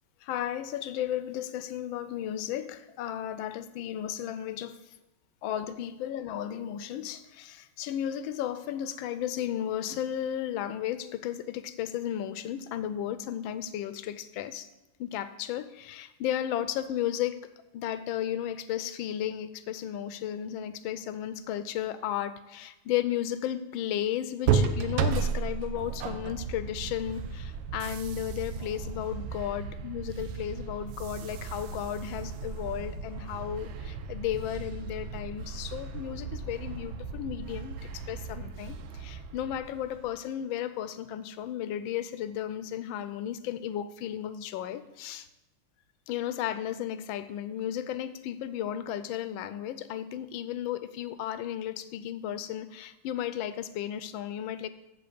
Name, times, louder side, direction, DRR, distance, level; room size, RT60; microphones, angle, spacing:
voice 1, 0.2-4.8 5.4-14.7 15.0-17.4 17.7-45.3 46.1-54.7, left 11 dB, 75° left, 13 dB, 1.3 m, -34 dB
sound 1, 24.4-40.2, right 5 dB, 90° right, 1.6 m, -34 dB
7.8 x 7.6 x 6.7 m, 0.98 s
omnidirectional pair, 2.4 m